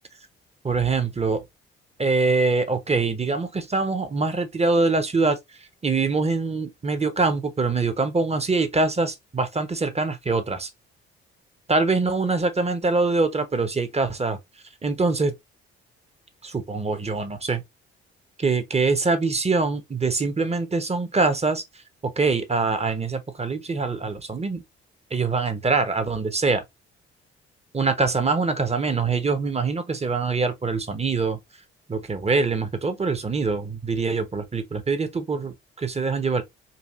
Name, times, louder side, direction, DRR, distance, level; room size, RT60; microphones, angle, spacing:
voice 1, 0.6-1.4 2.0-5.4 5.8-10.7 11.7-14.4 14.8-15.3 16.4-17.6 18.4-21.6 22.0-24.6 25.1-26.6 27.7-31.4 31.9-36.4, right 3 dB, 20° right, 1.0 m, -24 dB
4.2 x 2.6 x 2.5 m
hypercardioid pair, 45°, 32 cm